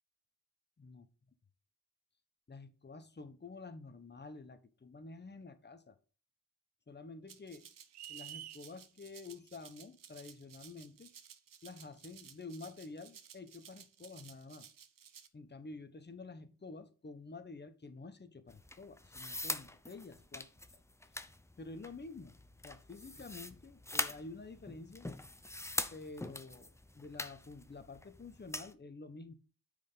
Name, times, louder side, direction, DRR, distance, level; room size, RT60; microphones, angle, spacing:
voice 1, 2.5-6.0 6.9-7.7 8.1-11.1 11.6-14.7 15.3-20.5 20.7-20.8 21.6-22.4 22.6-25.1 25.9-26.7 26.9-29.3, left 3 dB, 25° left, 10 dB, 1.2 m, -49 dB
Rattle (instrument), 7.3-15.3, right 8 dB, 55° right, 1.0 m, -57 dB
sound 1, 7.9-8.6, right 12 dB, 75° right, 0.6 m, -47 dB
sound 2, 18.5-28.7, left 1 dB, 5° left, 0.7 m, -43 dB
8.9 x 5.1 x 4.0 m, 0.38 s
cardioid pair, 90°, 40 cm